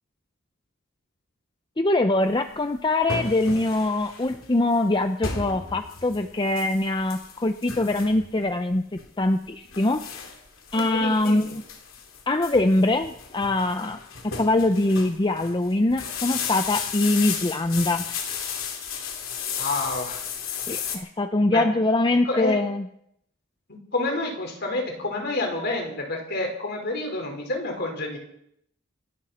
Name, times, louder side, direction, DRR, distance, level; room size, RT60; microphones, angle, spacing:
voice 1, 1.8-8.8 9.2-10.0 10.7-11.6 12.3-14.0 14.4-18.0 20.7-22.9, left 2 dB, 20° left, 8 dB, 0.6 m, -23 dB
sound 1, 2.3-21.0, left 6 dB, 75° left, 2.9 m, -34 dB
voice 2, 10.7-11.5 19.6-20.3 21.5-21.7 22.2-22.6 23.7-28.2, left 2 dB, 50° left, 2 dB, 4.6 m, -29 dB
26.5 x 12.5 x 4.3 m, 0.72 s
head